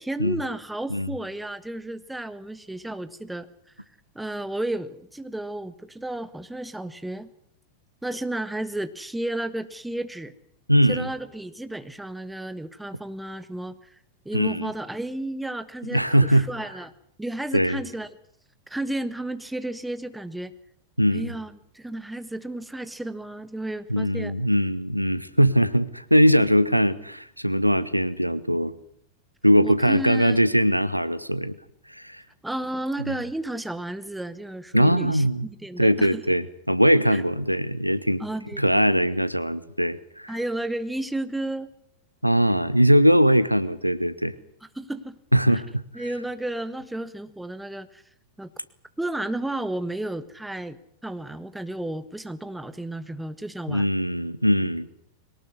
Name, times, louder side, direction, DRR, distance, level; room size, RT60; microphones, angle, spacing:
voice 1, 0.0-3.5 4.1-7.3 8.0-10.3 10.9-13.8 14.2-16.9 17.2-18.1 18.7-20.5 21.1-24.3 29.6-30.4 32.4-36.2 37.1-37.2 38.2-39.0 40.3-41.7 44.7-45.2 45.9-48.0 48.4-48.5 49.0-53.9, right 1 dB, 5° right, 12 dB, 1.5 m, -32 dB
voice 2, 10.7-11.1 14.3-14.7 15.9-16.5 17.5-17.8 21.0-21.3 23.9-28.7 29.4-31.5 31.9-32.2 33.1-33.2 34.7-35.5 35.8-38.3 38.6-40.4 42.2-44.3 45.3-46.0 53.7-54.9, equal, 90° right, 16 dB, 1.1 m, -21 dB
22.5 x 19.0 x 9.7 m, 0.70 s
figure-of-eight pair, 90°, 0 cm